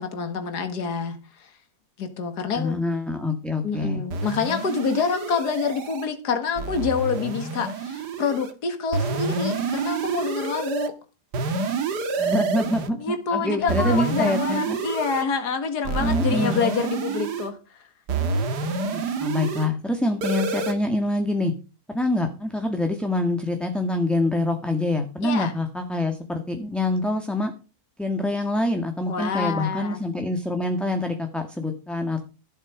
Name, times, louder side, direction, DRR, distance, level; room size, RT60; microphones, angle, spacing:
voice 1, 0.0-1.5 2.0-2.8 3.6-10.9 13.0-17.6 25.2-25.5 29.1-30.0, left 5 dB, 70° left, 2.3 m, -27 dB
voice 2, 2.6-4.0 12.1-14.8 16.0-16.6 18.9-21.5 21.9-27.5 28.0-32.2, left 1 dB, ahead, 1.5 m, -25 dB
sound 1, 4.1-6.1 6.6-8.5 8.9-10.9 11.3-12.9 13.7-15.2 15.8-17.5 18.1-19.7 20.2-20.7, right 4 dB, 75° right, 2.0 m, -28 dB
15.5 x 8.2 x 5.0 m
omnidirectional pair, 1.8 m